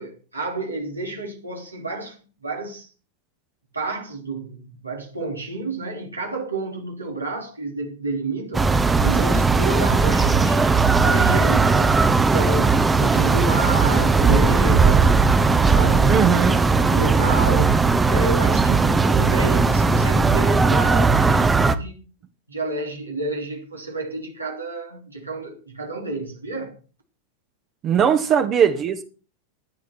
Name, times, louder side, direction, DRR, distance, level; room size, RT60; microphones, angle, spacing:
voice 1, 0.0-2.9 3.7-8.7 9.0-15.3 15.6-16.4 16.8-17.8 18.0-22.1 22.5-26.8, right 2 dB, 80° right, 3.2 m, -30 dB
sound 1, 8.5-21.8, right 4 dB, 10° right, 1.1 m, -18 dB
voice 2, 16.1-16.6 27.8-29.0, right 8 dB, 30° right, 1.5 m, -19 dB
16.0 x 10.5 x 4.6 m
figure-of-eight pair, 90°, 0 cm